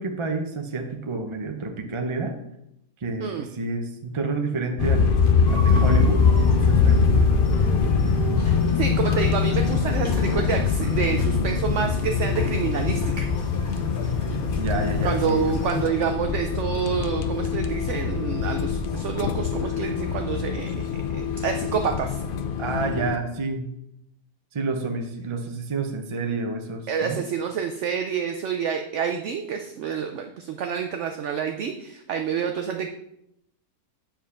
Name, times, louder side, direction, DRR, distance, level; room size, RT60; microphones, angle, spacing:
voice 1, 0.0-2.4 3.0-5.2 5.5-7.2 14.6-15.5 22.6-23.7 24.5-27.2, right 3 dB, 35° right, 4 dB, 0.5 m, -29 dB
sound 1, 4.8-23.1, left 5 dB, 60° left, 0.5 m, -23 dB
sound 2, 5.5-15.9, left 3 dB, 35° left, 1.1 m, -30 dB
voice 2, 8.4-13.3 15.0-20.8 21.1-22.2 26.9-32.9, right 7 dB, 65° right, 5 dB, 0.8 m, -28 dB
7.3 x 4.4 x 5.7 m, 0.79 s
omnidirectional pair, 1.6 m